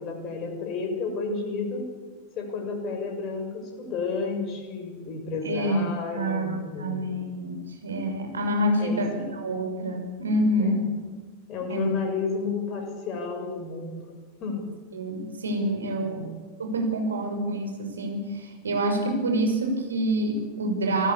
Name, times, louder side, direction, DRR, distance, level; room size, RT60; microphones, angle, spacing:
voice 1, 0.0-1.8 2.3-7.0 8.8-9.0 10.6-10.8 11.5-14.1 14.4-14.7 16.0-16.2, left 4 dB, 35° left, 4 dB, 6.8 m, -31 dB
voice 2, 5.4-10.9 11.7-11.9 14.9-16.2 16.6-21.1, right 1 dB, 70° right, 4 dB, 6.1 m, -27 dB
29.0 x 18.0 x 8.5 m, 1.4 s
figure-of-eight pair, 90°, 0 cm